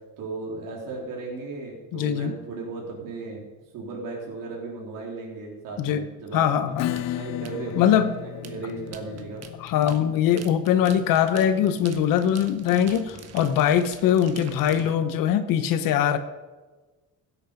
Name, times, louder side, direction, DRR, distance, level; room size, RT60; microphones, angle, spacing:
voice 1, 0.2-3.4 3.7-6.8 7.2-7.8 8.0-9.4 10.0-10.1 13.1-13.2 14.7-14.9, right 3 dB, 75° right, -2 dB, 3.6 m, -36 dB
voice 2, 1.9-2.3 5.8-6.0 6.3-6.9 7.8-8.1 9.6-16.2, left 9 dB, 80° left, 10 dB, 1.1 m, -22 dB
Acoustic guitar / Strum, 6.8-14.0, left 15 dB, 55° left, 0.5 m, -37 dB
sound 1, 7.0-14.9, right 7 dB, 50° right, 1.4 m, -45 dB
16.0 x 8.7 x 5.2 m, 1.2 s
cardioid pair, 125°, 33 cm